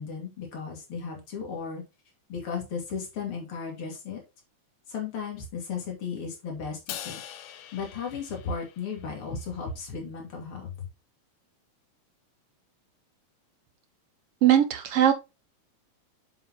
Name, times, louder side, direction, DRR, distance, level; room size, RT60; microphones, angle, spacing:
voice 1, 0.0-1.8 2.3-4.2 4.9-7.2 7.5-10.9, left 5 dB, 45° left, 0 dB, 3.5 m, -35 dB
Crash cymbal, 6.9-9.3, left 11 dB, 85° left, 2.4 m, -42 dB
voice 2, 14.4-15.1, right 10 dB, 60° right, 7 dB, 1.9 m, -20 dB
7.6 x 6.7 x 3.0 m, 0.26 s
omnidirectional pair, 3.5 m